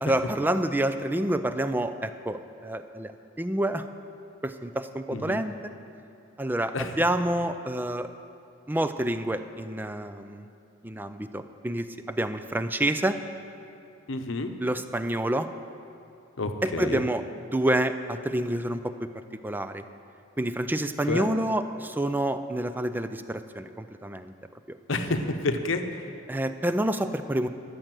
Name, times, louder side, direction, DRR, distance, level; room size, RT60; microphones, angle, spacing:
voice 1, 0.0-3.1 3.4-3.9 4.4-5.5 6.4-8.1 8.7-10.5 10.8-13.2 14.6-15.5 16.6-17.2 17.5-18.9 19.4-19.8 20.4-24.3 24.7-24.8 26.3-27.5, right 1 dB, 10° right, 10 dB, 0.3 m, -28 dB
voice 2, 5.1-5.4 6.7-7.0 14.1-14.5 16.4-17.0 21.1-21.3 24.9-26.1, left 2 dB, 65° left, 7 dB, 0.8 m, -29 dB
13.5 x 6.5 x 7.6 m, 2.6 s
head